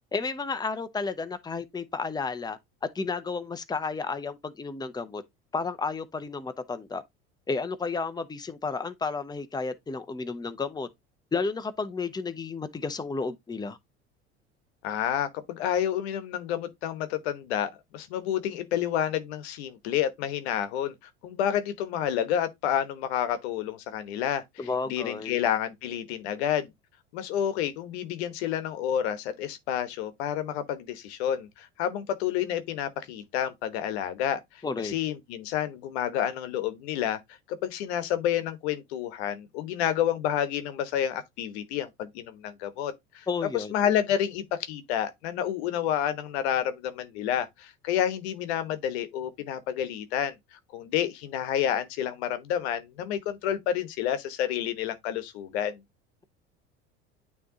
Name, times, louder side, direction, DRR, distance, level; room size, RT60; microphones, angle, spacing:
voice 1, 0.1-2.6 2.9-5.2 5.5-7.0 7.5-10.9 11.3-13.8 24.6-25.4 34.6-34.9 43.3-43.7, left 4 dB, 10° left, 0.9 m, -32 dB
voice 2, 14.8-24.4 24.9-26.7 27.1-37.2 37.5-43.2 43.5-50.3 50.7-55.8, left 10 dB, 70° left, 1.1 m, -29 dB
9.2 x 3.2 x 3.8 m
hypercardioid pair, 75°, 33 cm